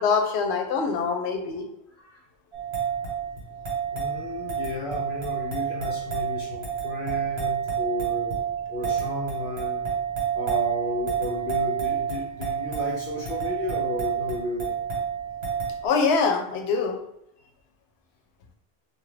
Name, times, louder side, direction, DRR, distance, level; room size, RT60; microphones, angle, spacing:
voice 1, 0.0-1.6 15.8-17.0, left 5 dB, 90° left, 3 dB, 0.9 m, -24 dB
sound 1, 2.5-15.9, right 8 dB, 85° right, 1.4 m, -29 dB
voice 2, 3.9-8.4 8.7-9.8 10.3-14.7, left 1 dB, 65° left, -2 dB, 0.7 m, -33 dB
2.6 x 2.5 x 3.2 m, 0.76 s
omnidirectional pair, 1.1 m